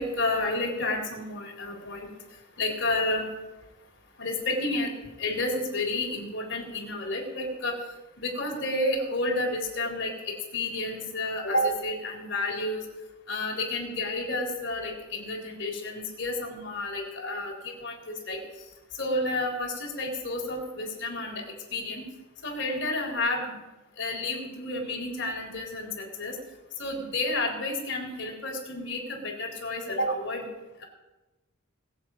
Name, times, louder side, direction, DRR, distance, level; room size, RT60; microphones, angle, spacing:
voice 1, 0.0-2.1 2.6-3.3 4.2-4.9 5.2-7.7 8.2-12.8 13.3-18.4 19.0-21.4 21.7-22.0 22.4-23.5 24.0-26.4 26.8-30.4, left 2 dB, 55° left, 0 dB, 3.8 m, -30 dB
20.5 x 8.0 x 5.1 m, 1.1 s
head